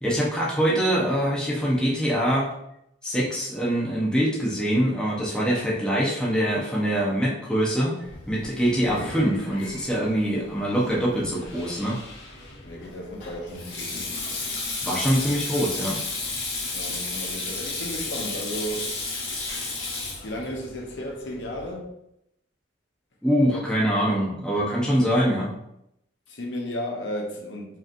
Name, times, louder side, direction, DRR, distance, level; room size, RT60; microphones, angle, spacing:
voice 1, 0.0-2.5 3.0-8.0 8.3-12.0 14.8-16.0 23.2-25.5, equal, 5° left, -5 dB, 0.7 m, -24 dB
Sink (filling or washing), 8.0-21.7, left 3 dB, 90° left, 1.3 m, -34 dB
voice 2, 12.6-14.1 16.7-19.0 20.2-21.9 23.5-23.6 26.3-27.8, equal, 70° left, 0 dB, 0.9 m, -34 dB
4.8 x 3.0 x 2.6 m, 0.79 s
head